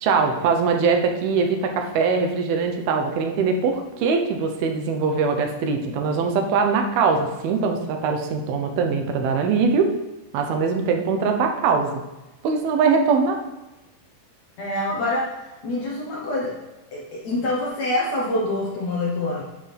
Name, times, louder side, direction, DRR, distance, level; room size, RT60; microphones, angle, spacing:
voice 1, 0.0-9.9 10.3-12.0 12.4-13.4, right 5 dB, 80° right, 3 dB, 2.7 m, -22 dB
voice 2, 14.6-16.5 16.9-19.4, left 1 dB, 60° left, -4 dB, 1.9 m, -26 dB
9.9 x 6.1 x 3.4 m, 1.0 s
omnidirectional pair, 4.5 m